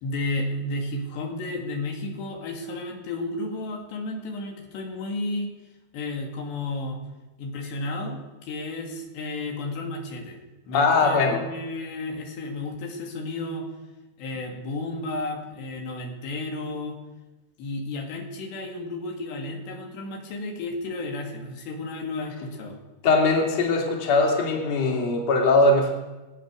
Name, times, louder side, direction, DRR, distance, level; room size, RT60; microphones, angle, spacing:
voice 1, 0.0-5.5 5.9-7.0 7.4-10.4 10.7-13.7 14.2-17.0 17.6-22.8, left 2 dB, 90° left, 1 dB, 4.6 m, -32 dB
voice 2, 10.7-11.4 23.0-25.9, left 3 dB, 45° left, 1 dB, 3.3 m, -21 dB
24.5 x 8.7 x 6.6 m, 1.1 s
omnidirectional pair, 4.8 m